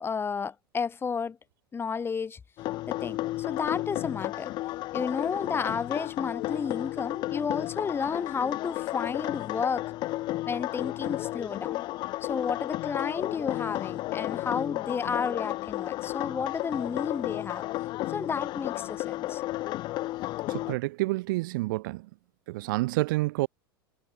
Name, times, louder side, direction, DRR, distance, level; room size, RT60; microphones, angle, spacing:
voice 1, 0.0-1.4 1.7-2.4 2.9-4.5 4.9-9.9 10.5-11.8 12.2-17.6 18.1-19.4, left 6 dB, 20° left, 0.9 m, -32 dB
sound 1, 2.6-20.7, left 17 dB, 40° left, 0.4 m, -33 dB
voice 2, 20.5-22.1 22.5-23.5, right 20 dB, 60° right, 0.4 m, -28 dB
figure-of-eight pair, 85°, 12 cm